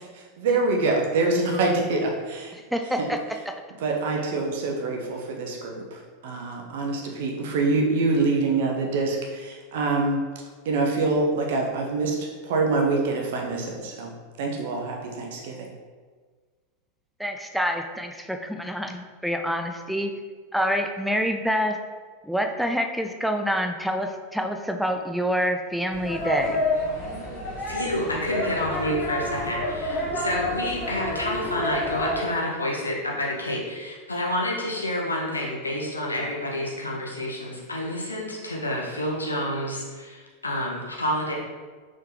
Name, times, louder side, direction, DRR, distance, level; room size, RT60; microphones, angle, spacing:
voice 1, 0.4-2.6 3.0-3.1 3.8-10.2 10.6-14.1 14.4-15.7, right 3 dB, 55° right, 0 dB, 0.8 m, -25 dB
voice 2, 2.7-3.4 17.2-20.1 20.5-21.8 22.2-26.6, equal, ahead, 5 dB, 0.4 m, -27 dB
sound 1, 25.9-32.2, left 1 dB, 45° left, 1.3 m, -29 dB
voice 3, 27.7-41.3, left 1 dB, 80° left, -2 dB, 0.9 m, -29 dB
4.4 x 3.7 x 3.2 m, 1.5 s
figure-of-eight pair, 85°, 0 cm